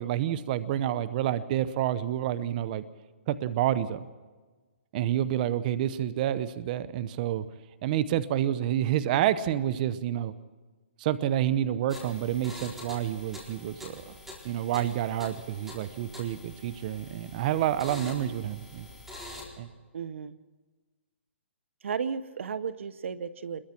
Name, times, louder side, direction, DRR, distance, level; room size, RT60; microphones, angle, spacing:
voice 1, 0.0-2.8 3.3-4.0 4.9-7.5 7.8-10.3 11.0-14.1 14.4-18.9 19.6-19.7, right 11 dB, 40° right, 14 dB, 0.9 m, -28 dB
sound 1, 11.9-19.5, left 1 dB, 5° right, 4.6 m, -45 dB
voice 2, 19.9-20.4 21.8-23.6, right 6 dB, 75° right, 16 dB, 0.9 m, -34 dB
29.0 x 22.0 x 4.5 m, 1.3 s
hypercardioid pair, 145°, 7 cm